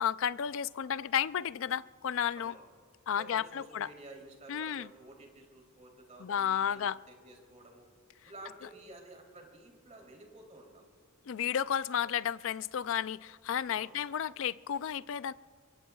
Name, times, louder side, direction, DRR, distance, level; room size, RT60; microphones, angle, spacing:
voice 1, 0.0-2.5 3.1-3.9 4.5-4.9 6.2-7.0 11.3-15.3, left 8 dB, 65° left, 0.4 m, -32 dB
voice 2, 2.3-2.7 3.2-7.9 8.2-10.8 13.7-14.0, right 2 dB, 35° right, 3.2 m, -52 dB
26.0 x 23.5 x 2.3 m
head